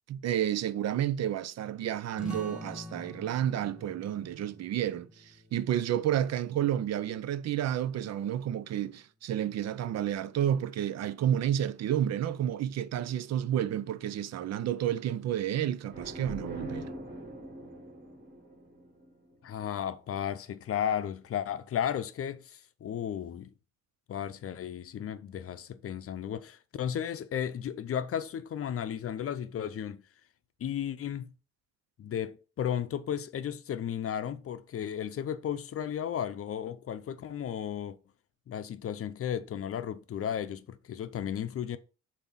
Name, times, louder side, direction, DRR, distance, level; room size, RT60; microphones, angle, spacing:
voice 1, 0.1-16.9, right 10 dB, 60° right, 0.5 m, -30 dB
sound 1, 2.2-7.4, left 1 dB, 5° right, 2.0 m, -47 dB
sound 2, 15.9-19.6, equal, 35° right, 3.0 m, -43 dB
voice 2, 19.4-23.5 24.1-30.0 30.6-31.3 32.0-38.0 38.5-41.8, left 9 dB, 50° left, 0.6 m, -34 dB
7.0 x 2.8 x 5.6 m
cardioid pair, 90°, 30 cm